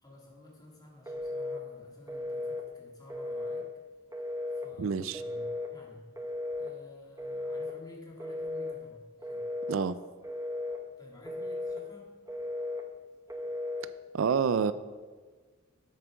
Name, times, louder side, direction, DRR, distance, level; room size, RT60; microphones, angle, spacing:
voice 1, 0.0-3.7 4.5-6.1 6.6-9.5 11.0-12.2, left 1 dB, 20° left, -1 dB, 2.0 m, -53 dB
Telephone, 1.1-1.6 2.1-2.6 3.1-3.7 4.1-4.7 5.1-5.7 6.2-6.7 7.2-7.7 8.2-8.8 9.2-9.8 10.2-10.8 11.2-11.8 12.3-12.8 13.3-13.9, left 2 dB, 15° right, 0.9 m, -35 dB
voice 2, 4.8-5.2 9.7-10.0 14.1-14.7, right 6 dB, 75° right, 14 dB, 0.4 m, -27 dB
8.1 x 7.3 x 6.1 m, 1.4 s
head